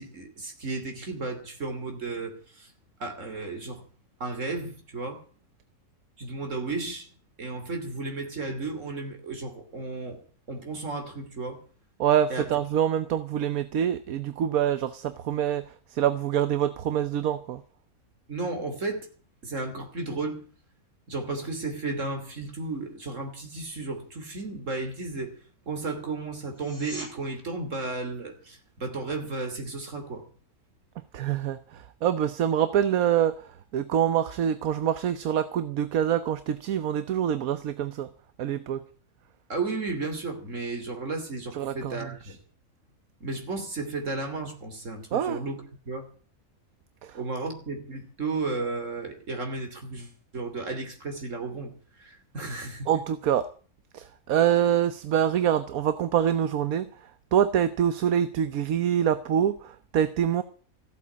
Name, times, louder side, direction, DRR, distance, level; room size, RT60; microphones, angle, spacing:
voice 1, 0.0-2.7 3.0-3.8 4.2-5.2 6.2-7.1 7.4-10.2 10.5-11.6 12.3-12.5 18.3-19.1 19.4-20.5 21.1-25.4 25.7-30.2 39.5-42.4 43.2-46.1 47.1-52.9, right 3 dB, 55° right, 3.4 m, -34 dB
voice 2, 12.0-17.6 31.1-38.1 38.4-38.8 41.5-42.3 45.1-45.4 47.0-47.2 52.9-53.5 53.9-60.4, right 9 dB, 75° right, 1.3 m, -25 dB
sound 1, 26.5-27.1 38.5-38.6, equal, 20° right, 8.2 m, -41 dB
15.0 x 8.4 x 8.5 m
omnidirectional pair, 1.5 m